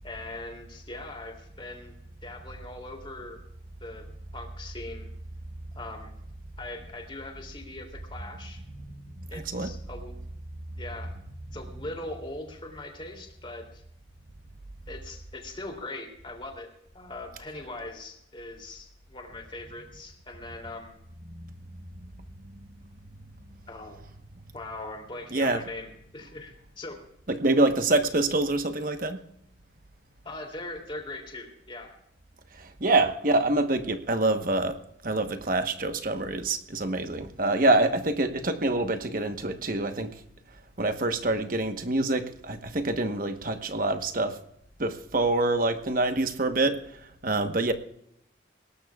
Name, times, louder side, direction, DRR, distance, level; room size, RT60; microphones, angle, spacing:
voice 1, 0.0-2.0 2.2-3.4 3.8-4.0 4.3-5.1 5.7-6.1 6.6-8.6 9.3-10.1 10.8-11.1 11.5-13.8 14.9-16.7 16.9-21.0 23.7-24.1 24.5-27.0 27.4-27.5 30.2-31.9 32.9-33.0, left 2 dB, 25° left, 3 dB, 2.9 m, -41 dB
voice 2, 27.3-29.2 32.6-34.8 35.0-40.1 40.8-44.4 44.8-46.8 47.2-47.7, right 2 dB, 45° right, 8 dB, 1.1 m, -26 dB
21.5 x 18.5 x 2.4 m, 0.75 s
head